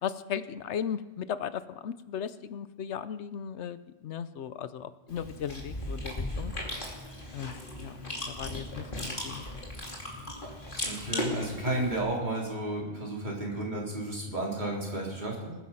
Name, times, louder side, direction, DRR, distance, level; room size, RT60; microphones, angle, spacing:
voice 1, 0.0-6.5 7.3-9.4 10.2-10.3, left 8 dB, 80° left, 14 dB, 1.0 m, -37 dB
Chewing mastication, 5.1-12.0, left 1 dB, 45° left, 3.1 m, -37 dB
voice 2, 10.9-15.5, right 1 dB, 40° right, -3 dB, 3.8 m, -32 dB
20.0 x 10.5 x 5.7 m, 1.1 s
omnidirectional pair, 1.2 m